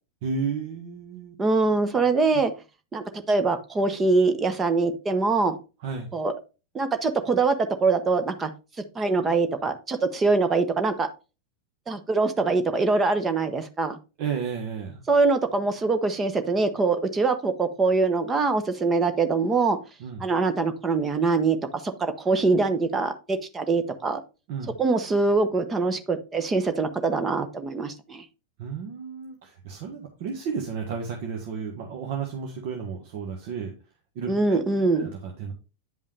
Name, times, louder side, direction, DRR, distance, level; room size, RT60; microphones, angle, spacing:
voice 1, 0.2-1.3 2.3-2.4 5.8-6.1 14.2-15.1 20.0-20.2 24.5-24.7 28.6-33.7 34.1-34.6 34.9-35.5, right 6 dB, 50° right, 2 dB, 1.5 m, -32 dB
voice 2, 1.4-2.5 2.9-5.6 6.1-6.3 6.7-8.5 8.9-11.1 11.9-14.0 15.1-19.8 20.2-21.6 22.0-24.2 24.8-28.2 34.3-35.1, right 3 dB, 20° right, 9 dB, 1.0 m, -23 dB
9.6 x 5.4 x 3.3 m, 0.31 s
figure-of-eight pair, 90°, 0 cm